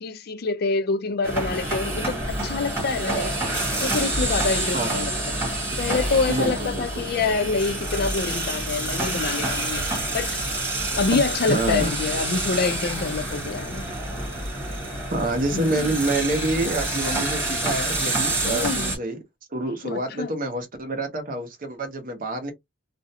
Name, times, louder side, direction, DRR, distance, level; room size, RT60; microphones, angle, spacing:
voice 1, 0.0-3.3 3.8-5.4 5.8-10.3 11.0-13.8 15.5-15.9 18.4-19.0 19.8-20.3, left 4 dB, 55° left, 0.4 m, -26 dB
sound 1, 1.2-19.0, right 1 dB, 10° right, 1.3 m, -27 dB
voice 2, 4.7-5.1 6.3-7.0 11.1-11.9 14.8-19.2 19.5-22.5, right 2 dB, 45° right, 0.8 m, -27 dB
2.5 x 2.1 x 2.7 m
head